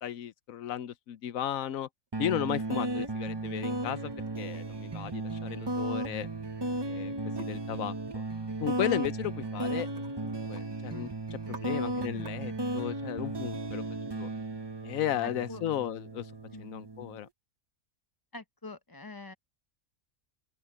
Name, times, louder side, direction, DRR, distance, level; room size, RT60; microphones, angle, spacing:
voice 1, 0.0-1.9 2.2-4.1 4.4-6.3 6.9-8.2 8.6-9.9 10.1-13.8 14.1-14.3 14.8-16.3 16.6-17.3, left 11 dB, 80° left, 1.2 m, -35 dB
sound 1, 2.1-17.2, right 2 dB, 20° right, 0.8 m, -35 dB
sound 2, 3.6-3.9 4.2-5.7 7.4-7.5 8.9-9.1 9.4-10.6 11.0-11.1 11.4-11.6 12.1-12.4, right 3 dB, 55° right, 2.5 m, -51 dB
voice 2, 11.5-11.8 12.1-12.3 15.2-15.6 16.5-16.8 18.3-19.3, left 3 dB, 20° left, 0.8 m, -46 dB
open air
omnidirectional pair, 1.4 m